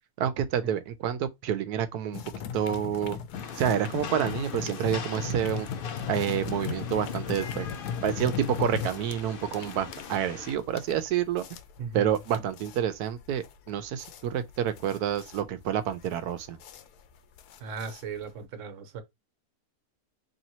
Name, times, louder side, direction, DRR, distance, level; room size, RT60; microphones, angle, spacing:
voice 1, 0.2-2.2 2.5-3.2 3.6-5.7 6.1-7.7 8.0-11.5 11.9-16.6, right 9 dB, 85° right, 1.2 m, -28 dB
sound 1, 2.1-18.4, left 7 dB, 90° left, 1.2 m, -38 dB
Rain, 3.3-10.6, left 6 dB, 50° left, 0.7 m, -41 dB
voice 2, 11.8-12.1 17.6-19.0, right 5 dB, 60° right, 1.1 m, -37 dB
4.3 x 3.1 x 2.7 m
omnidirectional pair, 1.6 m